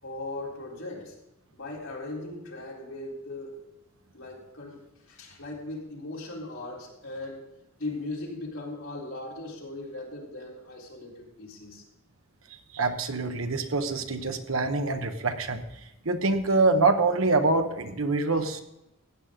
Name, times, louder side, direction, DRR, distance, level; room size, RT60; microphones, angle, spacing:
voice 1, 0.0-1.2 1.5-3.7 4.1-7.5 7.8-11.8, left 2 dB, 85° left, -3 dB, 3.9 m, -38 dB
voice 2, 12.7-15.6 16.0-18.6, right 3 dB, 85° right, 7 dB, 1.2 m, -25 dB
15.5 x 9.0 x 3.9 m, 0.90 s
head